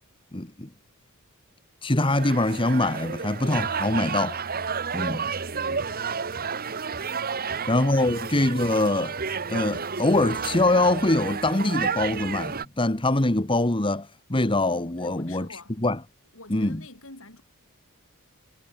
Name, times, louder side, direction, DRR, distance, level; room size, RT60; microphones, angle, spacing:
voice 1, 0.3-0.7 1.8-4.4 4.9-5.3 7.7-9.2 9.5-15.5 15.8-16.0 16.5-16.8, left 2 dB, 25° left, 1.4 m, -23 dB
sound 1, 2.0-12.7, right 6 dB, 45° right, 1.4 m, -31 dB
voice 2, 7.2-8.2 14.9-15.8 16.3-17.4, left 2 dB, 65° left, 7.3 m, -47 dB
head